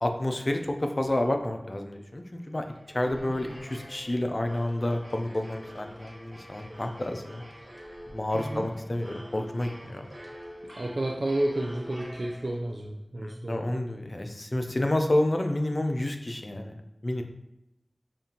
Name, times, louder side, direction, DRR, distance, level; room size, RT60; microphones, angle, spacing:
voice 1, 0.0-2.6 2.9-7.4 8.1-10.1 13.2-16.7 17.0-17.2, left 1 dB, 45° left, 5 dB, 0.4 m, -29 dB
sound 1, 2.4-12.9, equal, 30° right, 0.9 m, -46 dB
voice 2, 8.3-8.7 10.7-13.6, right 1 dB, 70° right, -1 dB, 0.4 m, -31 dB
5.2 x 2.5 x 2.8 m, 0.88 s
wide cardioid pair, 55°, 0 cm